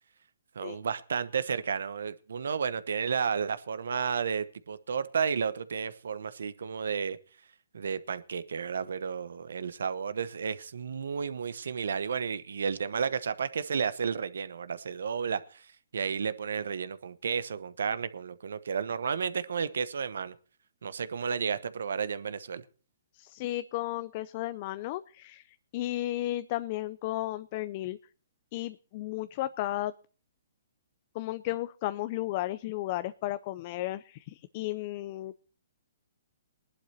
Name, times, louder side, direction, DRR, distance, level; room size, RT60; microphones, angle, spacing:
voice 1, 0.5-7.2 7.7-20.3 20.8-22.6, right 6 dB, 75° right, 15 dB, 1.0 m, -32 dB
voice 2, 23.1-28.0 28.5-29.9 31.1-35.3, left 15 dB, 40° left, 14 dB, 0.5 m, -34 dB
21.0 x 11.5 x 2.8 m, 0.38 s
hypercardioid pair, 140°, 0 cm